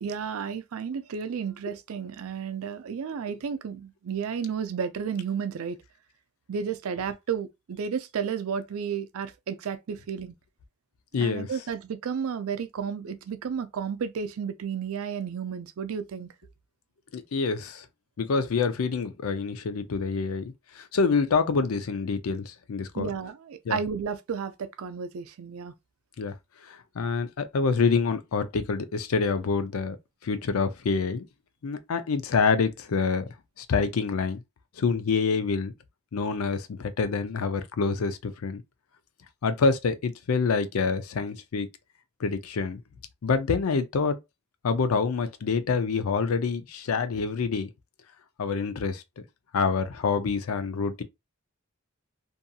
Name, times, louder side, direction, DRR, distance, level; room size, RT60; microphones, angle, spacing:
voice 1, 0.0-5.8 6.5-10.3 11.1-16.3 22.9-25.7, right 6 dB, 85° right, 0.4 m, -32 dB
voice 2, 11.1-11.5 17.1-17.9 18.2-23.1 23.7-23.8 26.2-26.3 26.7-30.0 30.2-31.3 31.6-33.2 33.6-34.4 34.8-35.7 36.1-38.6 39.4-41.7 42.2-42.8 43.2-44.2 44.6-47.7 48.4-49.0 49.5-51.0, left 4 dB, 90° left, 0.5 m, -26 dB
2.6 x 2.6 x 2.3 m
head